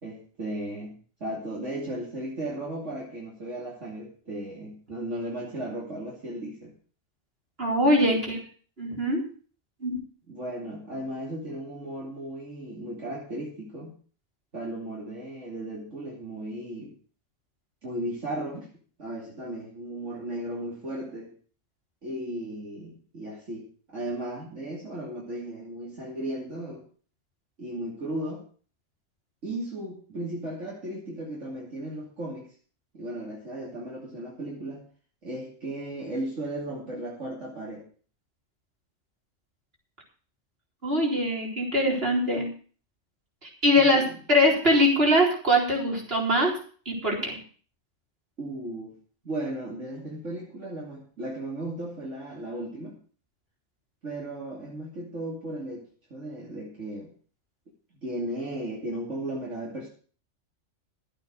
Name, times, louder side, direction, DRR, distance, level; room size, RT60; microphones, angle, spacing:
voice 1, 0.0-6.7 8.0-8.2 10.3-13.9 14.5-16.9 17.8-18.7 19.0-21.3 22.0-26.8 27.6-28.4 29.4-32.5 32.9-34.8 35.2-37.8 43.8-44.2 48.4-48.9 49.2-53.0 54.0-57.1 58.0-59.9, right 1 dB, 65° right, -4 dB, 3.2 m, -35 dB
voice 2, 7.6-8.4 8.8-9.2 9.8-10.0 40.8-42.5 43.4-46.6 46.9-47.4, equal, 50° right, -2 dB, 4.4 m, -22 dB
12.5 x 8.9 x 6.3 m, 0.41 s
omnidirectional pair, 1.3 m